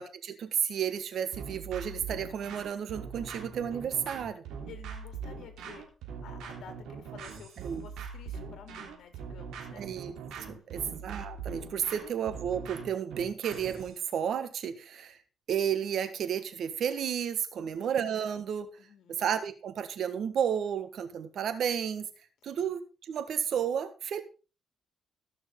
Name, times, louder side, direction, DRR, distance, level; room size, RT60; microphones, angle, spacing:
voice 1, 0.0-4.4 7.6-7.8 9.7-10.2 10.5-15.2 15.5-18.7 19.1-22.1 22.4-24.2, right 8 dB, 65° right, 11 dB, 1.5 m, -32 dB
sound 1, 1.3-14.0, right 6 dB, 85° right, 3.1 m, -41 dB
voice 2, 4.6-5.8 6.2-10.1 10.5-11.0 17.6-17.9 18.8-19.2 22.5-22.7, left 7 dB, 70° left, 6 dB, 2.7 m, -52 dB
17.5 x 6.3 x 3.7 m, 0.34 s
cardioid pair, 90°, 0 cm